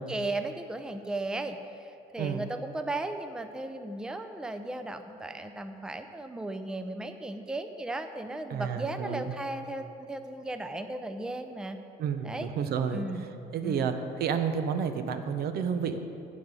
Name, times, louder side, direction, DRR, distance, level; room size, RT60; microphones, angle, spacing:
voice 1, 0.0-11.8 12.2-12.5 12.9-13.3 13.6-13.8, right 2 dB, 5° right, 8 dB, 0.5 m, -36 dB
voice 2, 8.5-9.3 12.0-13.1 13.5-13.9 14.2-16.0, right 7 dB, 70° right, 8 dB, 0.8 m, -30 dB
15.5 x 5.3 x 5.5 m, 2.8 s
cardioid pair, 110°, 17 cm